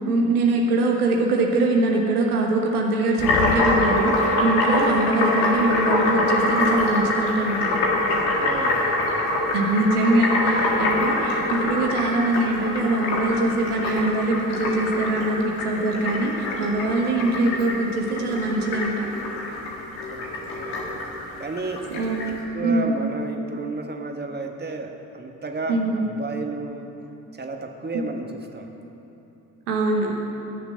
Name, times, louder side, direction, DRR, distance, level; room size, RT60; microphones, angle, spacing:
voice 1, 0.0-7.7 9.5-19.1 21.9-22.9 25.7-26.0 29.7-30.2, right 2 dB, 80° right, 0 dB, 1.1 m, -23 dB
sound 1, 3.2-22.3, left 2 dB, 75° left, 1.9 m, -24 dB
voice 2, 8.4-9.3 20.1-20.8 21.4-21.9 22.3-26.9 27.3-28.7, right 3 dB, 20° right, 3 dB, 1.5 m, -33 dB
19.0 x 6.9 x 5.7 m, 3.0 s
figure-of-eight pair, 40°, 44 cm